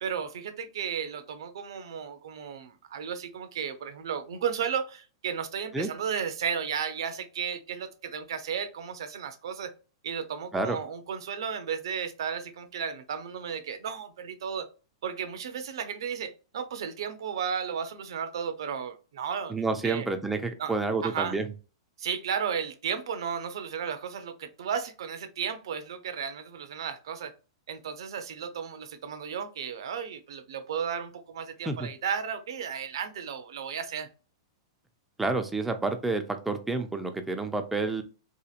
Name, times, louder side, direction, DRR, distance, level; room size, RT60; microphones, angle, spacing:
voice 1, 0.0-9.7 10.0-14.7 15.0-19.5 19.8-20.1 20.6-20.8 21.0-21.4 22.0-27.3 27.7-34.1, right 7 dB, 75° right, 0.5 m, -34 dB
voice 2, 19.5-21.5 31.7-31.9 35.2-38.0, right 3 dB, 5° right, 0.3 m, -29 dB
2.8 x 2.5 x 2.4 m
hypercardioid pair, 140°, 2 cm